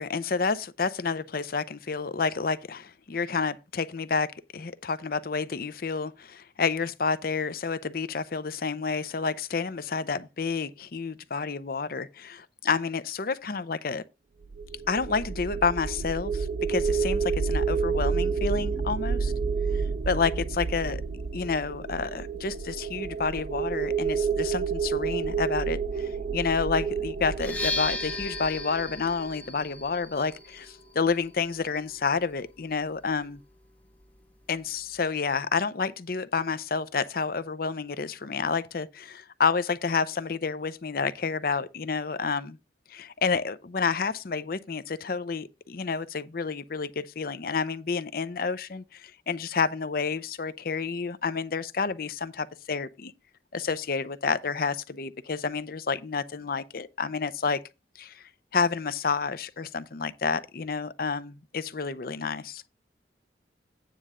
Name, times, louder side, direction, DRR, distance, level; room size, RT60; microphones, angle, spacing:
voice 1, 0.0-14.0 14.9-19.3 20.1-21.0 21.3-33.4 34.5-42.6 42.9-53.1 53.5-57.6 58.0-58.2 58.5-62.6, left 5 dB, 55° left, 0.6 m, -29 dB
sound 1, 14.4-29.5, right 5 dB, 50° right, 0.5 m, -30 dB
sound 2, 27.3-35.1, left 3 dB, 10° left, 0.9 m, -38 dB
9.4 x 3.7 x 6.7 m
head